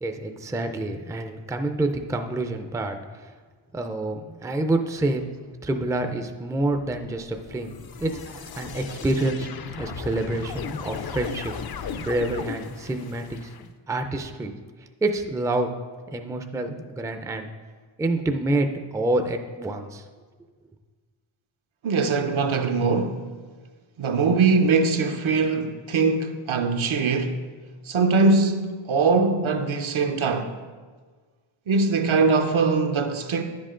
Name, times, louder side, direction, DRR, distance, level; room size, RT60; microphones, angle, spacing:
voice 1, 0.0-3.3 3.7-5.3 5.6-7.7 8.0-14.5 15.0-15.7 16.1-17.5 18.0-20.0, right 2 dB, 5° right, 0.4 m, -27 dB
sound 1, 6.6-13.7, left 6 dB, 50° left, 0.5 m, -37 dB
voice 2, 21.8-23.2 24.0-27.4 27.8-30.5 31.7-33.4, right 4 dB, 70° right, 0.9 m, -22 dB
10.5 x 7.6 x 3.8 m
wide cardioid pair, 140°, 49 cm